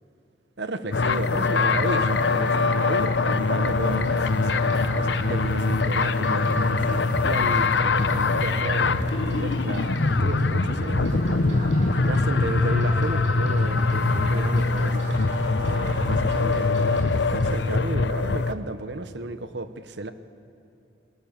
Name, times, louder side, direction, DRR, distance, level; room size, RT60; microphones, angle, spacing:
voice 1, 0.6-11.7 12.0-15.2 15.6-20.1, right 2 dB, 65° right, 11 dB, 1.0 m, -33 dB
sound 1, 0.9-18.5, left 3 dB, 65° left, 0.8 m, -23 dB
sound 2, 2.0-16.7, right 1 dB, 45° right, 3.0 m, -41 dB
sound 3, 3.6-17.5, equal, 85° right, 6.2 m, -34 dB
29.0 x 19.5 x 7.2 m, 2.7 s
head